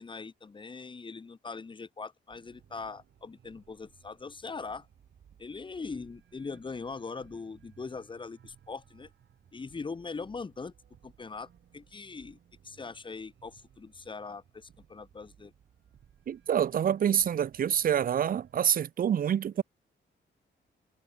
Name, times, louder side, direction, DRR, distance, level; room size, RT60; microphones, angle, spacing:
voice 1, 0.0-4.9 5.4-9.1 9.5-10.7 11.0-12.4 12.6-15.5, left 4 dB, 25° left, 0.9 m, -41 dB
sound 1, 2.3-18.6, right 9 dB, 70° right, 4.5 m, -61 dB
voice 2, 16.3-19.6, right 9 dB, 45° right, 0.5 m, -27 dB
wide cardioid pair, 150°, 20 cm